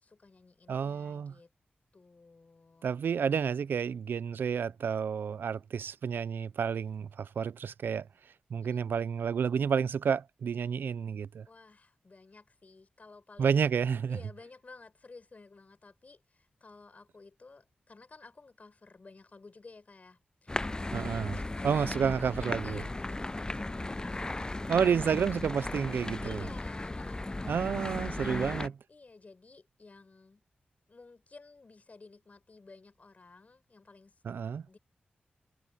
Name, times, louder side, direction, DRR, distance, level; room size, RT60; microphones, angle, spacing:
voice 1, 0.0-1.5 1.9-2.9 8.6-8.9 11.5-13.7 14.1-22.1 22.3-25.2 26.2-30.4 30.9-34.1 34.6-34.8, left 3 dB, 45° left, 4.4 m, -54 dB
voice 2, 0.7-1.3 2.8-8.1 8.5-11.5 13.4-14.2 20.9-21.4 21.6-22.8 24.7-26.4 27.5-28.7 34.2-34.6, right 7 dB, 85° right, 0.5 m, -30 dB
sound 1, 20.5-28.7, left 2 dB, 20° left, 0.5 m, -36 dB
cardioid pair, 65°, 3 cm